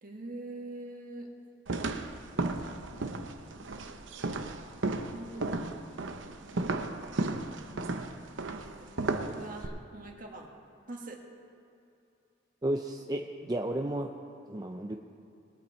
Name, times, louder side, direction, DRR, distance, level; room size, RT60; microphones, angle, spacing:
voice 1, 0.0-1.3 4.9-5.5 6.4-6.9 8.5-8.9 9.3-10.5 10.9-11.2, right 2 dB, 45° right, 1 dB, 1.7 m, -44 dB
sound 1, 1.7-9.7, right 2 dB, 85° right, 0.8 m, -34 dB
voice 2, 12.6-14.1 14.5-15.0, right 1 dB, 20° right, 2 dB, 0.5 m, -33 dB
21.0 x 8.4 x 4.4 m, 2.6 s
head